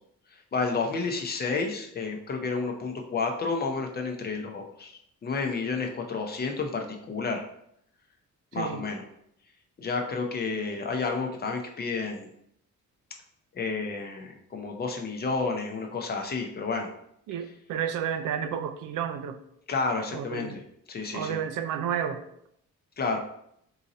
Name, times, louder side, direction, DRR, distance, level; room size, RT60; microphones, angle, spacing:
voice 1, 0.3-7.4 8.5-9.0 9.8-12.3 13.5-16.9 19.7-20.6 20.9-21.4 23.0-23.2, left 4 dB, 30° left, 3 dB, 0.5 m, -31 dB
voice 2, 8.5-8.9 17.3-19.4 20.1-20.6 21.1-22.2, right 8 dB, 85° right, 8 dB, 0.5 m, -31 dB
3.8 x 2.7 x 4.0 m, 0.73 s
wide cardioid pair, 170°, 31 cm